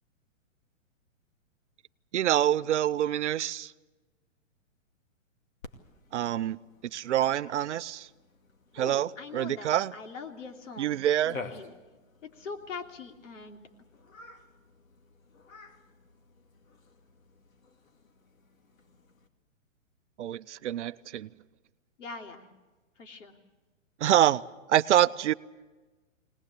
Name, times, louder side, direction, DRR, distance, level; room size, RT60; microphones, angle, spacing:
voice 1, 2.1-3.7 6.1-6.6 6.9-8.1 8.8-9.9 10.8-11.4 20.2-21.3 24.0-24.4 24.7-25.3, right 11 dB, 60° right, 15 dB, 0.6 m, -26 dB
Cat, 5.6-19.3, left 4 dB, 90° left, 2.5 m, -50 dB
voice 2, 8.8-11.0 11.3-11.8 12.2-13.6 22.0-22.5 23.0-23.4, left 4 dB, 70° left, 3 dB, 3.1 m, -42 dB
22.5 x 19.5 x 8.4 m, 1.2 s
hypercardioid pair, 160°, 39 cm